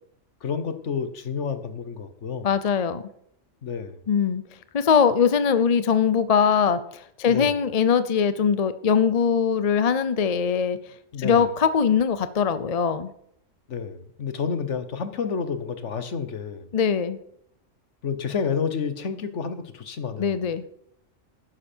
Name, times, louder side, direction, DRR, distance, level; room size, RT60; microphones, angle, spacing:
voice 1, 0.4-2.5 3.6-4.0 7.3-7.6 11.1-11.5 13.7-16.7 18.0-20.4, left 6 dB, 65° left, 10 dB, 1.4 m, -30 dB
voice 2, 2.4-3.1 4.1-4.4 4.7-6.8 7.2-10.8 11.2-13.1 16.7-17.2 20.2-20.6, left 7 dB, 40° left, 13 dB, 0.6 m, -21 dB
12.0 x 10.5 x 4.5 m, 0.71 s
omnidirectional pair, 1.3 m